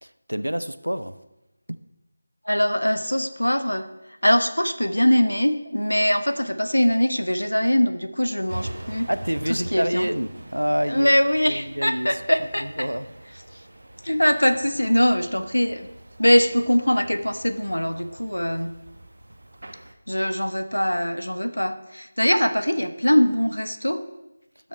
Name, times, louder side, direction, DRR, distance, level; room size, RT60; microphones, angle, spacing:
voice 1, 0.0-1.2 1.7-1.8 9.1-11.1 11.5-12.2 12.6-13.1, equal, 85° right, 0.5 m, -27 dB
voice 2, 2.5-3.9 4.2-9.1 9.7-10.1 10.9-12.6 14.0-15.9 16.2-18.7 20.1-24.1, equal, 85° left, 0.8 m, -22 dB
sound 1, 8.5-19.9, right 1 dB, 60° right, 1.0 m, -42 dB
12.0 x 6.2 x 4.4 m
figure-of-eight pair, 165°, 0 cm